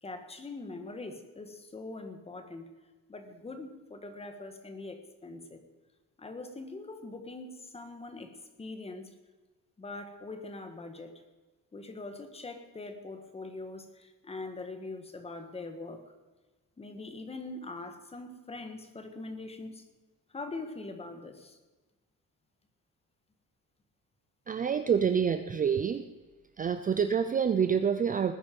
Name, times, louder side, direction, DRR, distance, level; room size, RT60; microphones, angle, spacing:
voice 1, 0.0-2.7 3.1-5.6 6.2-8.3 8.6-9.1 9.8-11.2 11.7-16.1 16.8-19.9 20.3-21.6, left 3 dB, 20° left, 7 dB, 1.5 m, -42 dB
voice 2, 24.5-26.0 26.6-28.3, right 7 dB, 25° right, 10 dB, 0.5 m, -27 dB
19.0 x 9.9 x 5.3 m, 1.2 s
cardioid pair, 175°, 33 cm